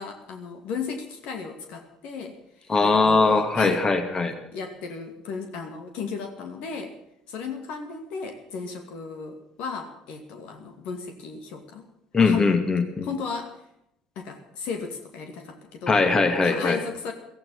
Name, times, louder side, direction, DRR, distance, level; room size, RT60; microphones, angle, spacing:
voice 1, 0.0-2.4 2.6-3.8 4.5-6.9 7.3-11.9 12.2-12.5 13.0-13.6 14.2-16.0 16.4-17.1, left 5 dB, 65° left, 5 dB, 2.4 m, -35 dB
voice 2, 2.7-4.3 12.1-13.1 15.9-16.8, left 4 dB, 30° left, 7 dB, 2.5 m, -21 dB
16.5 x 14.5 x 5.8 m, 0.78 s
hypercardioid pair, 60°, 2 cm